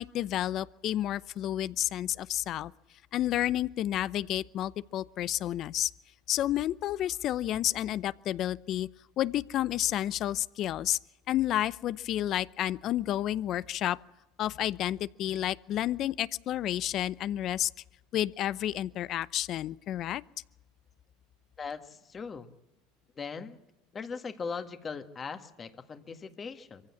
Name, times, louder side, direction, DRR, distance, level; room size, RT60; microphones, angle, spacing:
voice 1, 0.0-2.7 3.1-5.9 6.3-8.9 9.2-11.0 11.3-14.0 14.4-17.7 18.1-20.2, left 12 dB, 45° left, 18 dB, 0.7 m, -30 dB
voice 2, 21.6-22.5 23.2-23.6 23.9-26.8, left 5 dB, 25° left, 9 dB, 1.8 m, -39 dB
24.0 x 15.5 x 8.6 m, 0.99 s
supercardioid pair, 110°, 0 cm